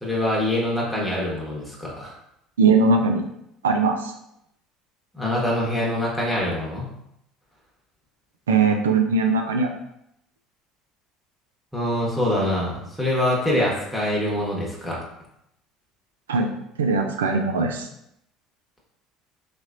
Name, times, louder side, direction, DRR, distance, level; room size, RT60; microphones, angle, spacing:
voice 1, 0.0-2.1 5.1-6.9 11.7-15.0, left 1 dB, ahead, -5 dB, 1.0 m, -24 dB
voice 2, 2.6-3.2 3.6-4.1 8.5-9.7 16.3-16.5 16.8-17.9, right 4 dB, 90° right, 3 dB, 0.3 m, -20 dB
3.2 x 2.9 x 2.5 m, 0.78 s
hypercardioid pair, 70°, 0 cm